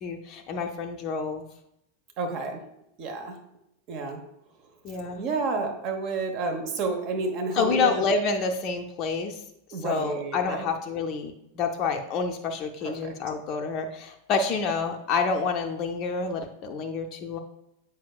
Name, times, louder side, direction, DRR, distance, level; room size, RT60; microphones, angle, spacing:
voice 1, 0.0-1.4 4.8-5.2 7.6-9.4 9.8-17.4, left 4 dB, 35° left, 3 dB, 0.5 m, -28 dB
voice 2, 2.2-2.6 3.0-3.4 3.9-4.2 5.2-7.9 9.7-10.7 12.8-13.1, right 4 dB, 40° right, 4 dB, 1.0 m, -30 dB
7.5 x 5.3 x 2.3 m, 0.79 s
figure-of-eight pair, 90°, 0 cm